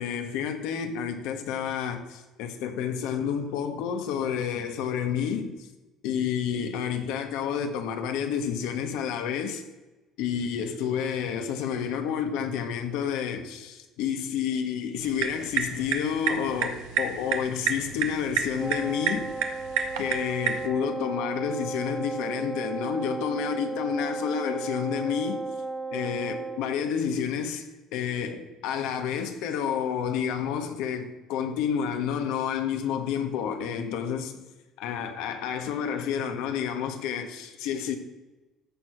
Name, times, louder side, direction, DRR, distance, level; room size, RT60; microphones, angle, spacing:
voice 1, 0.0-5.7 6.0-9.6 10.2-19.3 20.0-25.4 25.9-34.4 34.8-38.0, left 8 dB, 80° left, 1.2 m, -30 dB
sound 1, 15.0-20.7, right 7 dB, 85° right, 1.1 m, -31 dB
Wind instrument woodwind instrument, 18.5-26.7, right 3 dB, 10° right, 0.9 m, -34 dB
13.5 x 4.7 x 6.0 m
cardioid pair, 115°, 0 cm